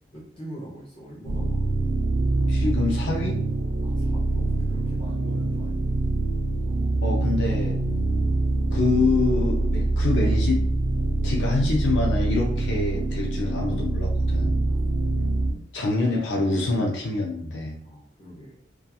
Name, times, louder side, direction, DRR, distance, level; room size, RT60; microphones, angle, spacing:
voice 1, 0.1-1.9 3.8-6.0 6.6-7.2 14.7-15.1 17.8-18.5, equal, 30° left, -6 dB, 0.6 m, -44 dB
sound 1, 1.2-15.5, right 2 dB, 85° right, 0.4 m, -24 dB
voice 2, 2.5-3.4 7.0-7.8 8.7-10.6 11.2-14.6 15.7-17.8, left 3 dB, 70° left, -1 dB, 0.4 m, -26 dB
2.7 x 2.3 x 2.3 m, 0.63 s
head